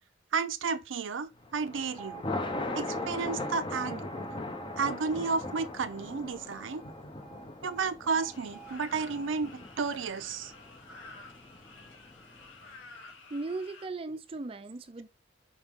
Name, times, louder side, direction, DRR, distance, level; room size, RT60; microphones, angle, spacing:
voice 1, 0.3-2.2 2.7-4.1 4.8-6.8 7.6-10.5, right 5 dB, 90° right, 0.5 m, -32 dB
Thunder, 1.4-12.7, left 2 dB, 25° left, 0.7 m, -40 dB
Alarm, 2.0-10.0, right 9 dB, 5° right, 0.8 m, -50 dB
sound 1, 8.3-13.9, left 3 dB, 85° left, 1.8 m, -51 dB
voice 2, 13.3-15.1, right 3 dB, 30° right, 0.4 m, -37 dB
5.5 x 4.9 x 3.6 m
head